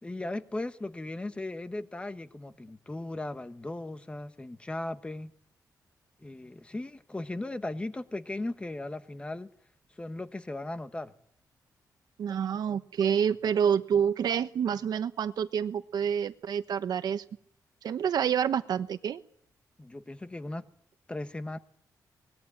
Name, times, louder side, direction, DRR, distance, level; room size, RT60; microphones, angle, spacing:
voice 1, 0.0-5.3 6.2-9.5 10.0-11.1 19.8-20.6 21.1-21.6, left 2 dB, 15° left, 1.1 m, -37 dB
voice 2, 12.2-17.2 17.8-19.2, right 8 dB, 70° right, 1.1 m, -28 dB
24.0 x 20.5 x 8.7 m
wide cardioid pair, 130°, 7 cm